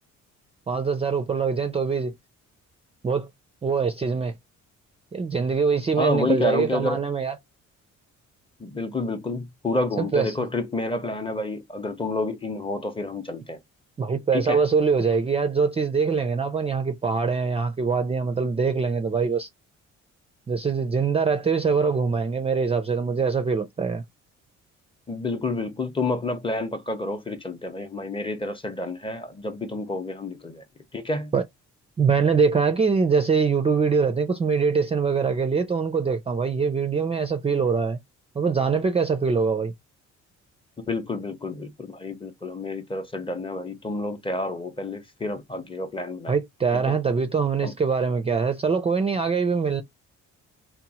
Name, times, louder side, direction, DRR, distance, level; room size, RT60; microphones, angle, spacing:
voice 1, 0.7-2.1 3.0-3.3 3.6-4.3 5.1-7.3 10.0-10.3 14.0-19.5 20.5-24.0 31.3-31.4 32.0-38.0 38.4-39.7 46.3-49.8, right 5 dB, 20° right, 0.4 m, -23 dB
voice 2, 6.0-7.0 8.6-13.6 14.3-14.6 25.1-30.6 30.9-31.3 40.9-46.4 46.7-46.9 47.6-47.7, left 2 dB, 15° left, 0.6 m, -29 dB
2.8 x 2.0 x 2.8 m
cardioid pair, 90°, 30 cm